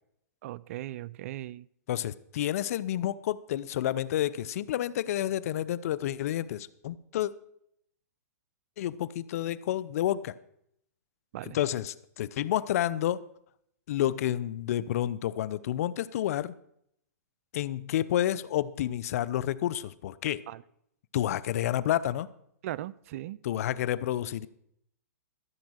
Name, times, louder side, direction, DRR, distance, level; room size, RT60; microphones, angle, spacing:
voice 1, 0.4-1.7 11.3-11.6 20.5-20.6 22.6-23.4, right 14 dB, 55° right, 21 dB, 0.4 m, -38 dB
voice 2, 1.9-7.3 8.8-10.3 11.5-13.2 13.9-16.5 17.5-20.4 21.1-22.3 23.4-24.5, left 12 dB, 60° left, 17 dB, 0.6 m, -30 dB
14.0 x 7.3 x 6.3 m, 0.72 s
hypercardioid pair, 120°, 9 cm